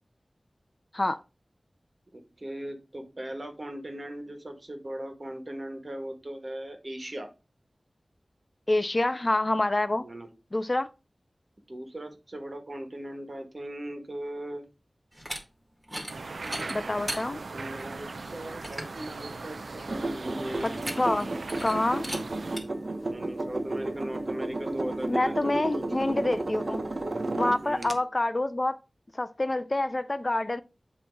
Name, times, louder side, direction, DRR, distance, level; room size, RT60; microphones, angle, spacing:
voice 1, 2.1-7.3 10.0-10.3 11.7-14.6 16.4-20.8 23.1-25.8 27.6-28.0, right 1 dB, 45° right, 1.4 m, -39 dB
voice 2, 8.7-10.0 10.5-10.9 16.7-17.4 21.0-21.3 21.6-22.1 25.1-26.8 27.3-28.8 29.1-30.6, left 2 dB, 40° left, 0.4 m, -27 dB
sound 1, 15.1-15.4 15.8-16.1 16.4-17.2 17.8-17.9 18.3-18.4 18.6-18.9 20.6-21.2 21.5-21.7 22.0-22.2 22.6-22.7, equal, 15° right, 1.8 m, -36 dB
sound 2, 16.1-22.6, right 3 dB, 90° right, 0.4 m, -39 dB
sound 3, 19.9-27.9, right 2 dB, 60° right, 0.7 m, -33 dB
7.7 x 3.0 x 4.5 m
wide cardioid pair, 55°, 0 cm